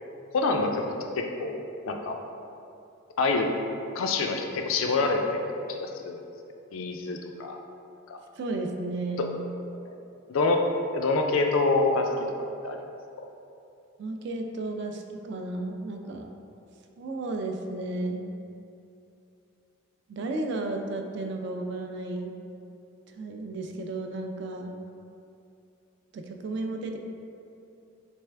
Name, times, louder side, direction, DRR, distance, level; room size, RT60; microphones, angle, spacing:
voice 1, 0.3-0.9 1.2-2.2 3.2-3.5 3.9-5.2 5.5-6.2 6.7-7.6 8.1-8.2 10.3-10.6 10.9-12.1 12.6-12.8 13.2-13.3, left 3 dB, 75° left, 3 dB, 0.4 m, -26 dB
voice 2, 8.4-9.4 14.0-16.3 17.0-18.3 20.1-22.3 23.1-24.8 26.1-27.0, right 2 dB, 55° right, 4 dB, 0.3 m, -33 dB
3.4 x 3.2 x 3.3 m, 2.6 s
head